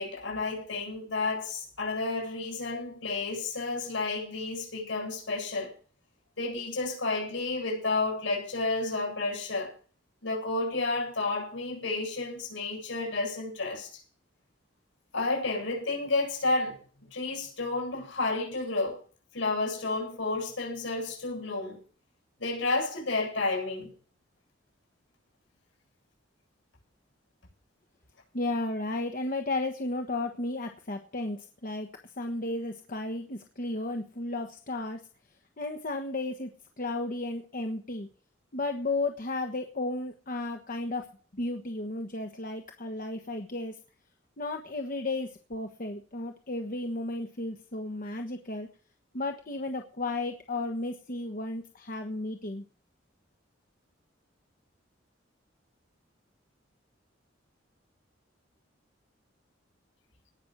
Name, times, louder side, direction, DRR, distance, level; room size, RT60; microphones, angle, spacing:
voice 1, 0.0-5.7 6.4-9.7 10.2-14.0 15.1-16.8 17.1-19.0 19.3-21.8 22.4-23.9, left 3 dB, 75° left, 7.6 m, -31 dB
voice 2, 28.3-31.9 32.2-35.0 35.6-38.1 38.5-43.8 44.4-48.7 49.1-52.6, left 2 dB, 45° left, 1.3 m, -34 dB
18.5 x 6.3 x 7.5 m
head